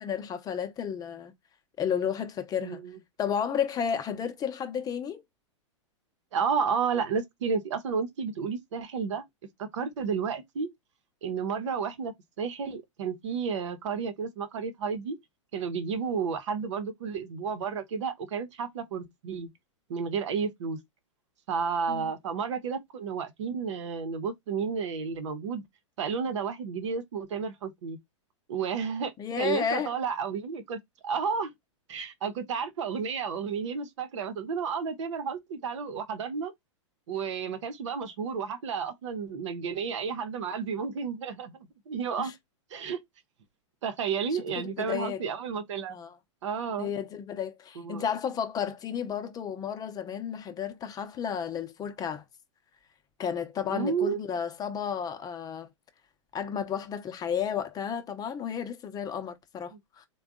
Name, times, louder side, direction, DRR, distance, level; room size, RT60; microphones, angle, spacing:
voice 1, 0.0-1.3 1.8-2.8 3.2-5.2 21.9-22.1 29.2-29.9 42.2-42.3 44.3-45.2 45.9-46.2 46.8-52.2 53.2-55.7 56.3-60.1, left 8 dB, 25° left, 0.7 m, -32 dB
voice 2, 2.6-3.0 6.3-9.2 9.6-10.7 11.2-15.2 15.5-19.5 19.9-20.8 21.5-25.6 26.0-28.0 28.5-31.5 31.9-36.5 37.1-41.6 41.9-42.3 42.7-43.0 43.8-46.0 46.4-46.9 47.8-48.0 53.7-54.2 59.7-59.8, right 6 dB, 70° right, 0.9 m, -32 dB
3.5 x 2.3 x 3.6 m
hypercardioid pair, 110°, 16 cm